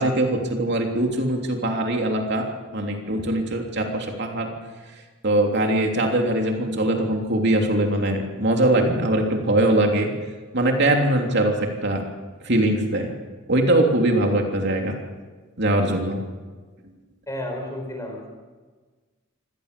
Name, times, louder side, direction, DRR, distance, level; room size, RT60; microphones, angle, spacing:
voice 1, 0.0-2.5 2.7-4.5 5.2-10.1 10.5-12.0 12.4-13.1 13.5-15.0 15.6-16.2, right 1 dB, 55° right, 2 dB, 3.2 m, -21 dB
voice 2, 17.3-18.3, left 1 dB, 15° left, 2 dB, 4.8 m, -32 dB
24.5 x 18.0 x 6.9 m, 1.4 s
head